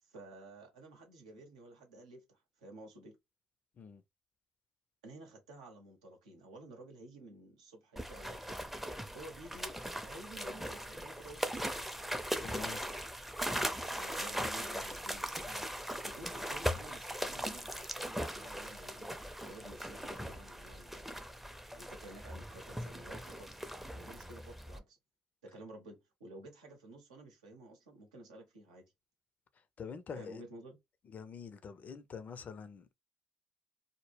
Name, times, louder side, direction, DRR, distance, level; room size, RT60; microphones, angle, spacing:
voice 1, 0.0-3.2 5.0-8.7 9.1-11.8 13.9-15.5 16.0-19.1 19.4-21.3 21.7-23.5 23.9-25.0 25.4-28.8 30.2-30.8, right 1 dB, 90° right, 0.7 m, -52 dB
sound 1, 8.0-24.8, equal, 5° right, 0.5 m, -39 dB
voice 2, 12.4-12.8 15.5-15.7 29.5-30.5 31.0-32.9, left 6 dB, 50° left, 0.4 m, -46 dB
2.1 x 2.0 x 3.2 m
hypercardioid pair, 50°, 4 cm